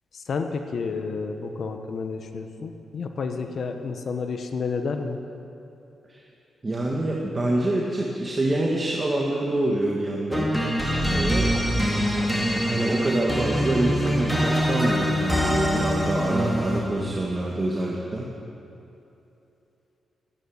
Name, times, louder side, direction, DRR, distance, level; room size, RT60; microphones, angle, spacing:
voice 1, 0.1-5.2, left 4 dB, 65° left, 6 dB, 1.1 m, -30 dB
voice 2, 6.6-10.5 11.1-11.5 12.7-18.3, right 1 dB, 30° right, -2 dB, 1.8 m, -26 dB
sound 1, 10.3-17.0, equal, 5° left, 2.3 m, -24 dB
13.5 x 9.7 x 8.7 m, 2.8 s
cardioid pair, 70°, 0 cm